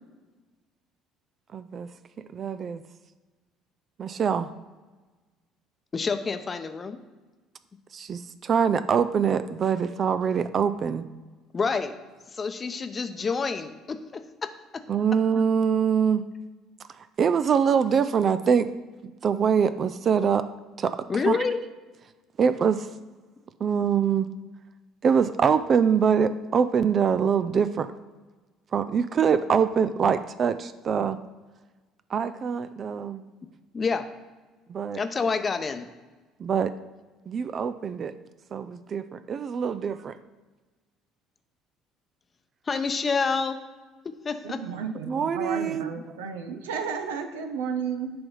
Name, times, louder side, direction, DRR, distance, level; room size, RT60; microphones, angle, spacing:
voice 1, 1.5-1.9 2.3-2.8 4.0-4.5 7.9-11.1 14.9-16.2 17.2-18.7 19.2-20.4 20.8-21.0 21.3-21.4 22.4-22.9 23.6-24.3 25.0-27.9 28.7-31.2 32.1-33.2 34.7-35.0 36.4-36.7 37.3-38.1 38.5-40.1 45.1-45.9, right 7 dB, 45° right, 11 dB, 0.4 m, -24 dB
voice 2, 5.9-7.0 11.5-11.9 12.3-14.2 21.1-21.6 33.7-34.0 34.9-35.9 42.7-43.6 44.2-44.6, left 5 dB, 35° left, 9 dB, 0.7 m, -27 dB
voice 3, 44.4-48.1, right 6 dB, 80° right, 6 dB, 0.7 m, -32 dB
6.9 x 3.5 x 5.5 m, 1.3 s
hypercardioid pair, 60°, 0 cm